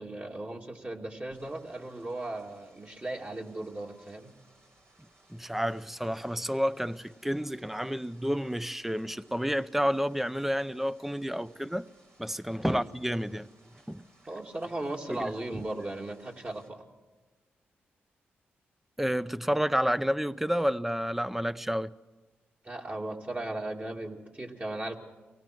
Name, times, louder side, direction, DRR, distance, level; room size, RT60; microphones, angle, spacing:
voice 1, 0.0-4.3 12.7-12.9 14.3-16.9 22.6-25.0, right 2 dB, 30° right, 2.6 m, -37 dB
sound 1, 1.3-16.7, right 2 dB, 65° right, 4.2 m, -63 dB
voice 2, 5.3-11.9 12.2-13.5 13.9-14.0 15.1-15.3 19.0-21.9, equal, 5° right, 0.6 m, -30 dB
23.5 x 17.5 x 6.2 m
supercardioid pair, 50°, 5 cm